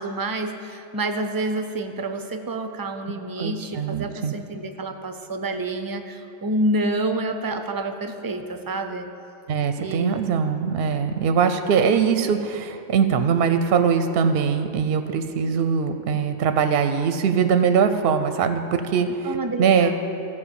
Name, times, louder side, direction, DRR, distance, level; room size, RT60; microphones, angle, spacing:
voice 1, 0.0-9.1 9.8-10.2 10.9-11.1 15.5-15.6 19.2-19.9, right 1 dB, 35° right, 7 dB, 0.4 m, -28 dB
voice 2, 3.4-4.3 9.5-19.9, right 6 dB, 65° right, 8 dB, 0.7 m, -22 dB
14.0 x 4.9 x 6.9 m, 2.6 s
omnidirectional pair, 1.2 m